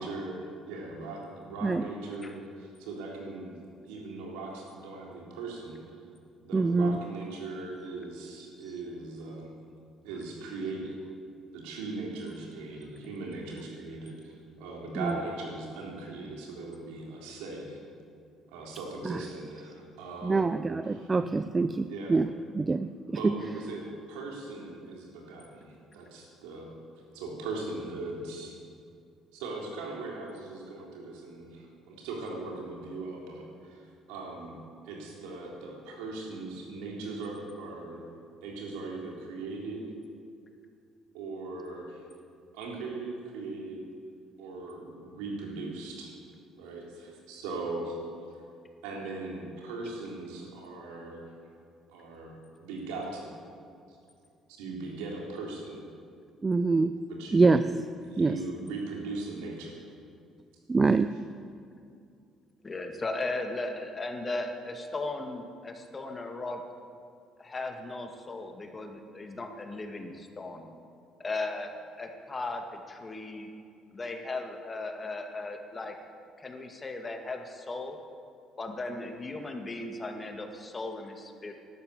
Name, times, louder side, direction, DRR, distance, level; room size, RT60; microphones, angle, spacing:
voice 1, 0.0-3.6 3.9-5.8 6.4-9.5 10.0-11.0 11.5-17.8 18.5-20.5 20.9-21.1 21.9-22.1 23.1-26.7 27.1-28.5 29.3-34.6 34.8-38.0 38.4-39.9 41.1-42.0 42.5-43.8 44.4-46.1 46.6-48.0 48.8-51.3 51.9-53.4 54.6-55.8 57.1-57.7 58.0-59.8, right 3 dB, 80° right, -2 dB, 3.5 m, -39 dB
voice 2, 6.5-7.0 15.0-15.1 19.0-19.2 20.2-22.3 22.5-23.3 56.4-57.0 57.3-57.8 58.2-58.4 60.7-61.2, right 3 dB, 30° right, 12 dB, 0.5 m, -25 dB
voice 3, 62.6-66.6 67.4-70.7 71.2-71.7 72.0-73.5 73.9-76.0 76.4-78.0 78.6-81.5, left 2 dB, 30° left, 4 dB, 2.2 m, -37 dB
12.5 x 11.5 x 8.3 m, 2.4 s
hypercardioid pair, 60°, 0 cm